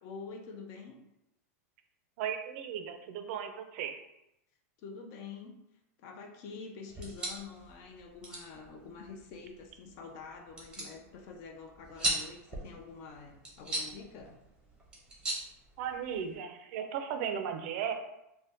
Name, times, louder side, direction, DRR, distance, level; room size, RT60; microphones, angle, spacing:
voice 1, 0.0-1.0 4.8-5.6 6.0-14.4, left 5 dB, 45° left, 3 dB, 0.4 m, -47 dB
voice 2, 2.2-3.9 15.8-17.9, right 8 dB, 55° right, 5 dB, 0.4 m, -36 dB
sound 1, 6.9-16.3, right 1 dB, 10° right, 0.6 m, -40 dB
2.5 x 2.1 x 3.4 m, 0.85 s
supercardioid pair, 145°, 8 cm